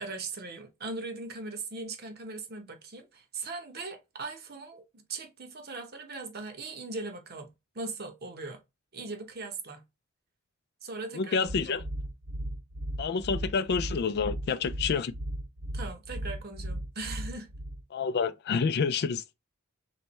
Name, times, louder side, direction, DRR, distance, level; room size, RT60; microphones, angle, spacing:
voice 1, 0.0-8.6 8.9-9.8 10.8-11.4 11.6-11.8 15.7-17.5, right 3 dB, 50° right, 1.0 m, -39 dB
voice 2, 11.1-11.8 13.0-15.1 17.9-19.2, left 5 dB, 50° left, 0.4 m, -28 dB
sound 1, 11.5-17.8, right 1 dB, 70° right, 1.7 m, -36 dB
3.4 x 3.1 x 4.1 m
head